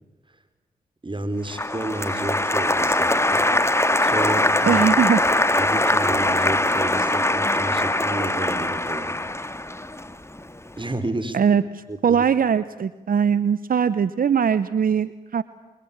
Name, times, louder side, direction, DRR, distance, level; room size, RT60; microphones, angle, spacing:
voice 1, 1.0-3.4 4.0-4.8 5.6-9.2 10.8-11.4 11.9-12.2, right 2 dB, 30° right, 10 dB, 4.9 m, -31 dB
Applause, 1.5-10.6, left 1 dB, 15° left, 2.0 m, -22 dB
voice 2, 4.6-5.2 11.3-11.6 12.0-15.4, right 7 dB, 70° right, 15 dB, 0.9 m, -20 dB
27.0 x 23.0 x 8.8 m, 1.2 s
supercardioid pair, 40°, 15 cm